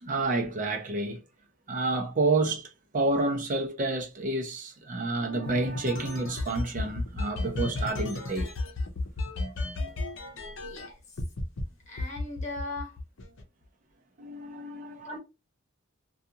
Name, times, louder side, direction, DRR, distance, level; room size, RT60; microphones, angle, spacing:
voice 1, 0.0-1.2 1.7-8.5 14.2-15.2, right 2 dB, 40° right, 0.6 m, -29 dB
sound 1, 5.5-10.9 11.2-11.6 12.0-13.4, left 2 dB, 70° left, 0.6 m, -33 dB
voice 2, 10.6-11.0 11.9-13.0 15.0-15.2, left 2 dB, 35° left, 1.0 m, -38 dB
2.4 x 2.4 x 2.8 m
head